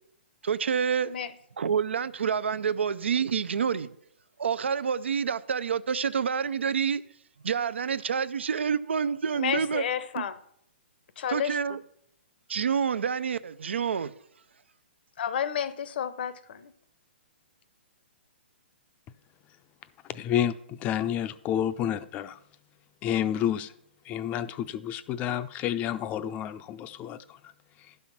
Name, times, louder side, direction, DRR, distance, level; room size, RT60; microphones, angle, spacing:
voice 1, 0.4-1.1 1.6-3.9 4.4-7.0 7.4-9.8 10.2-10.3 11.3-11.8 12.5-14.1, right 7 dB, 85° right, 0.5 m, -28 dB
voice 2, 9.3-10.4 11.2-11.8 15.2-16.7, left 8 dB, 60° left, 0.8 m, -31 dB
voice 3, 20.1-20.5 20.8-22.4 23.0-23.7 24.1-27.2, left 10 dB, 25° left, 0.4 m, -29 dB
11.5 x 5.6 x 5.9 m
hypercardioid pair, 145°, 6 cm